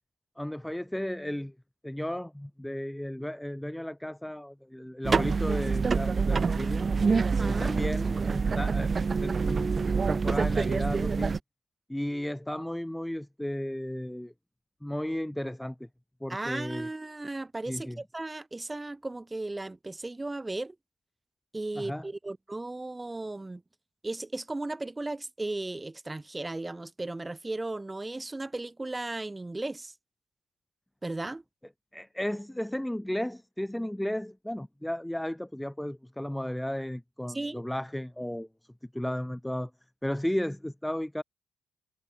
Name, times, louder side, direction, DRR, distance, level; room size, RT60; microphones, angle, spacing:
voice 1, 0.4-1.5 1.8-6.8 7.4-8.9 9.2-9.8 10.1-11.3 11.9-14.3 14.8-15.9 16.2-16.9 17.7-18.0 21.7-22.1 31.9-38.5 38.9-39.7 40.0-41.2, left 1 dB, 5° left, 3.1 m, -34 dB
sound 1, 5.0-11.4, right 5 dB, 35° right, 0.4 m, -26 dB
voice 2, 7.4-7.7 16.3-20.8 21.5-23.6 24.0-29.9 31.0-31.4 37.3-37.7, right 2 dB, 15° right, 2.4 m, -36 dB
cardioid pair, 90°, 0 cm